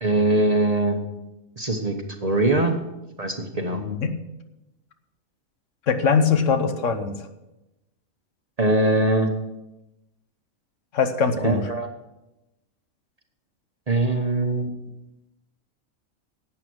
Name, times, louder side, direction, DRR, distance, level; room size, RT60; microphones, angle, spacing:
voice 1, 0.0-1.0 1.6-1.9 2.2-2.8 3.2-3.8 8.6-9.3 11.4-11.9 13.9-14.7, right 2 dB, 30° right, 4 dB, 0.9 m, -21 dB
voice 2, 3.7-4.1 5.9-7.2 10.9-11.7, left 5 dB, 65° left, 8 dB, 1.2 m, -22 dB
11.5 x 8.6 x 6.2 m, 0.96 s
omnidirectional pair, 1.4 m